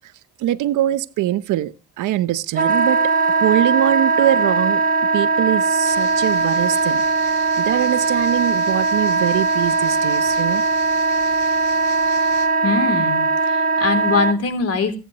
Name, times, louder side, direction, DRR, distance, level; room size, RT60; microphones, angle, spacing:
voice 1, 0.4-4.8 5.1-10.6, right 13 dB, 85° right, 0.9 m, -22 dB
Wind instrument woodwind instrument, 2.6-14.3, right 4 dB, 30° right, 1.5 m, -19 dB
sound 1, 5.8-12.5, left 7 dB, 80° left, 5.1 m, -40 dB
voice 2, 12.6-15.0, left 4 dB, 55° left, 3.3 m, -22 dB
26.5 x 9.2 x 3.1 m
cardioid pair, 90°, 30 cm